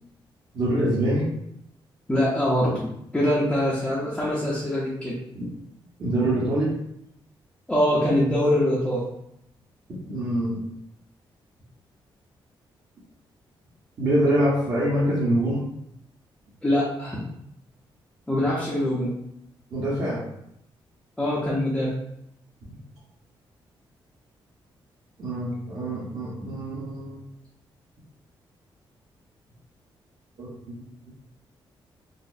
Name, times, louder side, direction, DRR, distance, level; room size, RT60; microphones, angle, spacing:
voice 1, 0.5-1.2 5.3-5.5 6.0-6.7 10.1-10.6 14.0-15.6 19.7-20.2 25.2-27.2 30.4-30.7, right 1 dB, 45° right, -9 dB, 0.9 m, -24 dB
voice 2, 2.1-5.2 7.7-9.1 16.6-17.2 18.3-19.2 21.2-22.0, left 1 dB, 10° left, -8 dB, 0.5 m, -23 dB
3.9 x 2.0 x 2.5 m, 0.76 s
wide cardioid pair, 175°, 9 cm